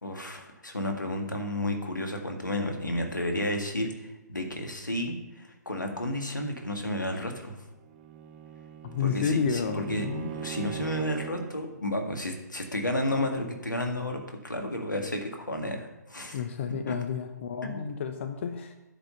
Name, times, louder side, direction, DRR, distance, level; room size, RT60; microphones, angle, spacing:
voice 1, 0.0-7.6 9.0-16.4 17.6-17.9, left 1 dB, 85° left, 4 dB, 1.8 m, -32 dB
Bowed string instrument, 7.7-11.6, right 11 dB, 30° right, 1.0 m, -40 dB
voice 2, 8.8-10.3 16.3-18.8, left 6 dB, 40° left, 8 dB, 0.7 m, -31 dB
9.8 x 5.1 x 7.0 m, 1.0 s
figure-of-eight pair, 135°, 10 cm